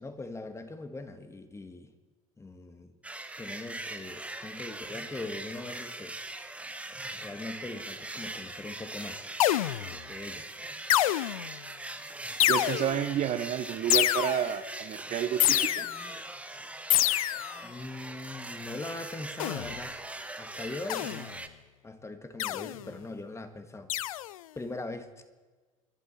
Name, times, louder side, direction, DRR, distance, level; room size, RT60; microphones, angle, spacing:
voice 1, 0.0-1.9 2.4-2.9 3.4-6.2 7.1-9.2 9.8-10.5 17.6-20.0 20.4-21.3 21.8-23.9 24.6-25.1, left 2 dB, 15° left, 9 dB, 1.6 m, -41 dB
sound 1, 3.0-21.5, right 2 dB, 5° right, 1.1 m, -41 dB
sound 2, 9.4-10.0 10.9-11.6 12.4-13.1 13.9-14.6 15.4-16.1 16.9-17.6 19.4-19.8 20.9-21.4 22.4-22.8 23.9-24.4, left 14 dB, 75° left, 0.4 m, -27 dB
voice 2, 12.5-15.9, right 10 dB, 40° right, 10 dB, 1.0 m, -30 dB
25.5 x 11.0 x 4.2 m, 1.3 s
figure-of-eight pair, 75°, 18 cm